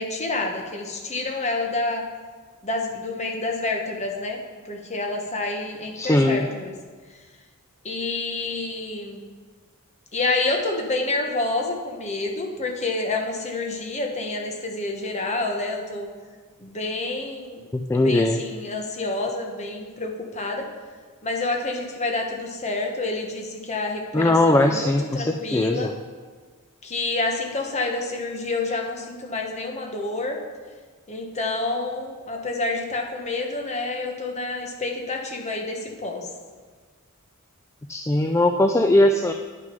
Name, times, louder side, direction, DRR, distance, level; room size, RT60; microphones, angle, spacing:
voice 1, 0.0-2.0 2.6-4.4 4.6-6.7 7.8-9.2 10.1-16.1 16.6-17.6 17.9-20.7 21.2-25.9 26.8-30.4 31.1-36.3, left 2 dB, 30° left, 2 dB, 1.2 m, -28 dB
voice 2, 5.9-6.5 17.7-18.4 24.1-25.9 37.9-39.3, left 1 dB, 15° left, 5 dB, 0.3 m, -20 dB
10.0 x 6.3 x 5.3 m, 1.5 s
head